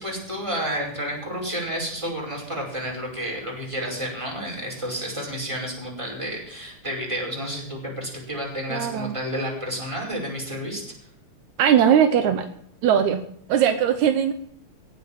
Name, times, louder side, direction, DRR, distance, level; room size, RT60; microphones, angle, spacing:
voice 1, 0.0-10.8, equal, 10° right, -1 dB, 5.5 m, -30 dB
voice 2, 8.7-9.1 11.6-12.5 12.8-13.2 13.5-14.3, right 9 dB, 75° right, 9 dB, 2.2 m, -19 dB
18.0 x 8.1 x 7.3 m, 0.67 s
omnidirectional pair, 3.4 m